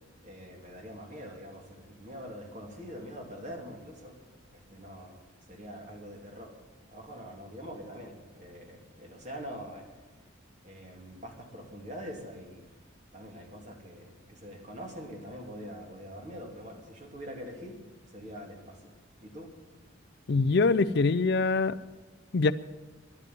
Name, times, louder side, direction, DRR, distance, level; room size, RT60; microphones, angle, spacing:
voice 1, 0.2-4.2 4.5-5.2 5.5-6.5 6.9-9.9 10.6-12.7 13.1-17.8 18.1-18.9 19.2-19.5, equal, 35° right, 1 dB, 2.8 m, -44 dB
voice 2, 20.3-21.8 22.3-22.5, left 3 dB, 55° left, 15 dB, 0.5 m, -24 dB
12.5 x 11.0 x 9.3 m, 1.2 s
head